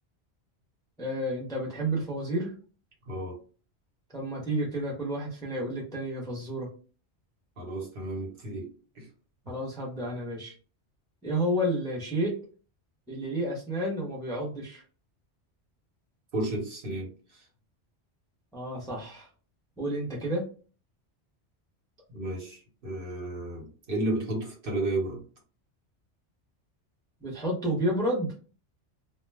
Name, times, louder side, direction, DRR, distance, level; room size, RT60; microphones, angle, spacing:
voice 1, 1.0-2.5 4.1-6.7 9.5-10.5 11.2-12.3 13.1-14.8 18.5-19.3 19.8-20.4 27.2-28.3, right 1 dB, 5° left, -3 dB, 0.5 m, -30 dB
voice 2, 3.0-3.4 7.6-8.7 8.9-9.1 16.3-17.4 22.1-25.2, right 1 dB, 55° right, -1 dB, 1.1 m, -33 dB
2.2 x 2.2 x 3.2 m, 0.37 s
omnidirectional pair, 1.2 m